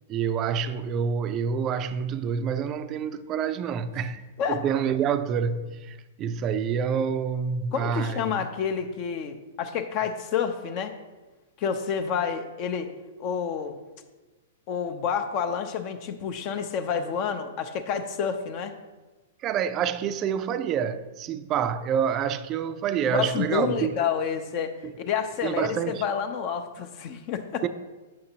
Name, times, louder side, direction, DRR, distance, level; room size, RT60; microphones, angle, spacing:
voice 1, 0.1-4.2 4.5-8.4 19.4-24.0 25.4-26.0 27.6-27.7, right 7 dB, 30° right, 0.4 m, -27 dB
voice 2, 7.7-10.9 11.6-12.9 13.2-13.8 14.7-18.7 23.0-27.6, left 7 dB, 45° left, 0.6 m, -29 dB
8.5 x 5.9 x 2.8 m
hypercardioid pair, 125°, 0 cm